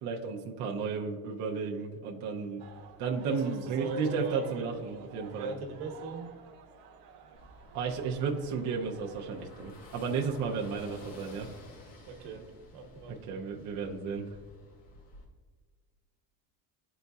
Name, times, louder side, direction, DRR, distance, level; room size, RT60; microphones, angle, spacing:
voice 1, 0.0-2.6 3.0-5.5 7.7-11.5 13.1-14.3, right 5 dB, 40° right, -1 dB, 0.6 m, -33 dB
sound 1, 2.6-9.5, right 6 dB, 55° right, 1.0 m, -52 dB
voice 2, 3.3-4.8 5.3-6.3 12.1-12.4 12.7-13.2, right 3 dB, 80° right, 2 dB, 1.2 m, -39 dB
Car passing by / Engine, 7.3-15.2, left 2 dB, 65° left, 1.5 m, -52 dB
11.5 x 4.0 x 2.3 m, 1.5 s
cardioid pair, 150°, 46 cm